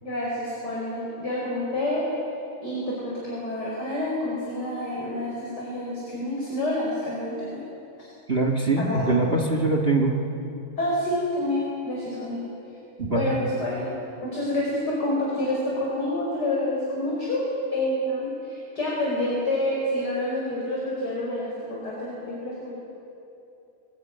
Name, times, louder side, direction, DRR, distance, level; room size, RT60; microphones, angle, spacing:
voice 1, 0.0-2.0 2.6-7.6 8.0-8.1 8.8-9.1 10.8-12.4 13.1-13.9 14.2-22.7, left 1 dB, 25° left, -5 dB, 5.5 m, -28 dB
voice 2, 8.3-10.2 13.0-13.3, right 2 dB, 50° right, 2 dB, 0.7 m, -23 dB
22.0 x 20.0 x 9.6 m, 2.8 s
omnidirectional pair, 4.4 m